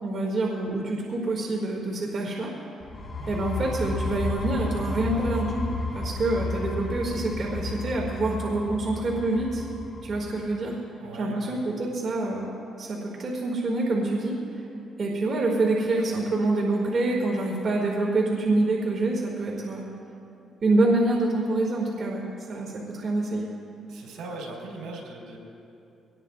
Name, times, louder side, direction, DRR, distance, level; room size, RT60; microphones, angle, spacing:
voice 1, 0.0-2.5 3.3-9.7 10.0-10.8 11.1-12.5 12.8-14.7 15.0-19.8 20.6-22.2 22.5-23.5, right 2 dB, 50° right, -2 dB, 2.3 m, -26 dB
sound 1, 2.8-10.4, left 3 dB, 35° left, 3.1 m, -32 dB
voice 2, 10.9-11.6 23.9-25.4, right 2 dB, 80° right, -2 dB, 4.3 m, -40 dB
23.0 x 19.0 x 2.5 m, 2.7 s
cardioid pair, 90°, 0 cm